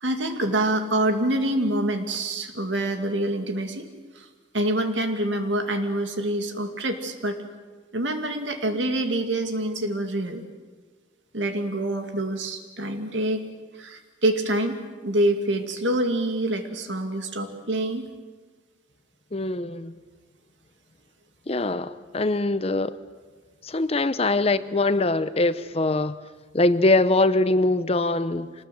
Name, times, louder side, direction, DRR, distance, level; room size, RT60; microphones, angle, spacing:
voice 1, 0.0-3.9 4.2-4.3 4.5-7.4 7.9-10.4 11.3-13.4 13.8-18.1, right 1 dB, 80° right, 6 dB, 2.4 m, -26 dB
voice 2, 19.3-19.9 21.5-23.0 23.6-26.2 26.5-28.5, left 2 dB, 35° left, 14 dB, 0.7 m, -23 dB
25.5 x 19.5 x 7.7 m, 1.4 s
head